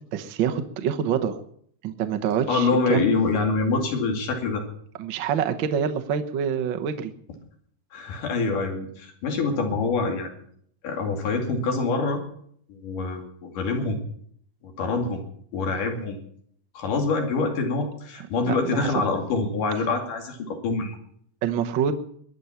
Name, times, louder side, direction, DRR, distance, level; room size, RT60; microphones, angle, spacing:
voice 1, 0.1-1.4 1.8-3.0 5.0-7.1 18.4-18.9 21.4-22.0, right 8 dB, 60° right, 7 dB, 1.3 m, -26 dB
voice 2, 2.5-4.6 7.9-10.3 10.8-12.2 12.7-14.0 14.6-15.2 15.5-16.2 16.7-21.0, left 3 dB, 90° left, 3 dB, 4.0 m, -25 dB
22.0 x 9.7 x 5.8 m, 0.64 s
omnidirectional pair, 3.6 m